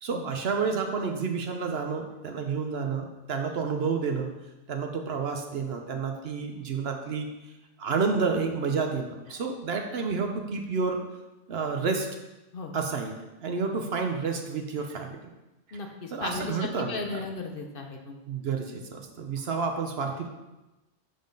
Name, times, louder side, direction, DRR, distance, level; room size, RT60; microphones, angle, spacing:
voice 1, 0.0-4.3 4.7-7.3 7.8-11.0 11.5-12.1 12.7-13.1 13.4-15.2 16.1-17.0 18.3-20.3, right 5 dB, 60° right, 4 dB, 0.9 m, -30 dB
voice 2, 15.7-18.2, left 3 dB, 55° left, 3 dB, 0.8 m, -35 dB
7.0 x 3.9 x 5.2 m, 1.0 s
omnidirectional pair, 1.3 m